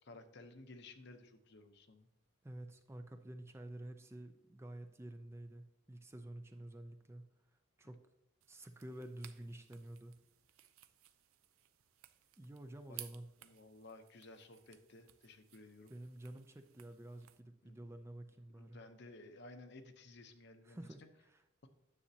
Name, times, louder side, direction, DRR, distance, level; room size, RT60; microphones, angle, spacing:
voice 1, 0.0-2.1 12.9-13.1 13.4-16.0 17.6-17.8 18.5-20.8 21.6-21.7, left 2 dB, 55° left, 7 dB, 0.8 m, -56 dB
voice 2, 2.4-7.3 7.8-8.0 8.5-10.2 12.4-13.3 15.9-18.8 20.6-21.0 21.3-21.4, right 1 dB, 15° right, 7 dB, 0.4 m, -50 dB
sound 1, 8.4-17.4, right 13 dB, 85° right, 0.5 m, -59 dB
9.8 x 7.1 x 2.8 m, 0.85 s
head